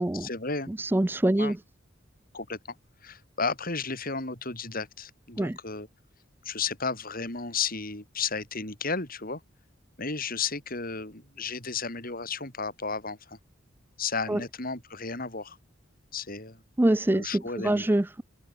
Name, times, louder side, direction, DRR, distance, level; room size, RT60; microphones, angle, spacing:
voice 1, 0.1-0.7 1.4-1.5 2.3-2.6 3.0-5.9 6.4-9.4 10.0-13.4 14.0-15.6 16.1-16.6 17.1-17.9, left 4 dB, 45° left, 6.9 m, -33 dB
voice 2, 0.7-1.6 5.4-5.6 14.3-14.4 16.8-18.2, right 1 dB, 10° right, 0.4 m, -25 dB
head